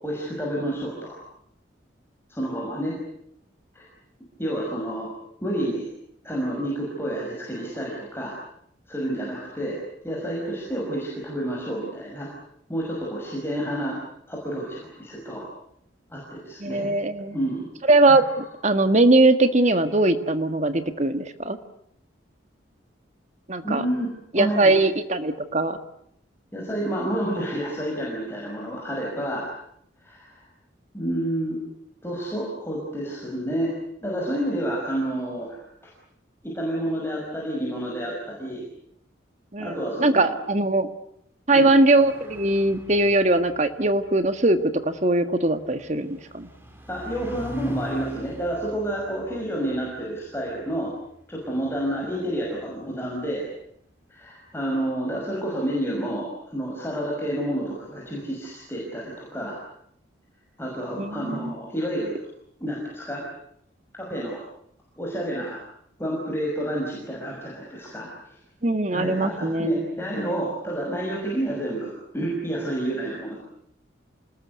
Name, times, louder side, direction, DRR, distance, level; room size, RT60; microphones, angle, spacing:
voice 1, 0.0-1.2 2.3-2.9 3.7-3.8 4.4-5.1 5.4-5.9 6.2-8.3 8.9-9.8 10.0-12.3 12.7-14.0 14.3-15.4 16.1-17.0 17.3-17.7 23.6-24.1 24.4-24.7 26.5-29.5 30.0-30.3 30.9-31.6 32.0-33.7 34.0-35.5 36.4-38.6 39.6-40.4 41.5-41.7 46.9-50.9 51.3-53.5 54.1-56.3 56.5-59.6 60.6-62.2 62.6-63.2 63.9-64.4 65.0-65.6 66.0-68.3 68.9-73.4, right 1 dB, 10° left, -3 dB, 5.9 m, -29 dB
voice 2, 16.6-17.4 17.9-21.6 23.5-23.8 24.3-25.8 39.5-40.9 41.5-46.5 61.0-61.5 68.6-69.7, right 2 dB, 35° right, 9 dB, 1.7 m, -21 dB
sound 1, 42.0-52.9, equal, 10° right, 4.3 m, -43 dB
28.0 x 20.0 x 9.6 m, 0.71 s
head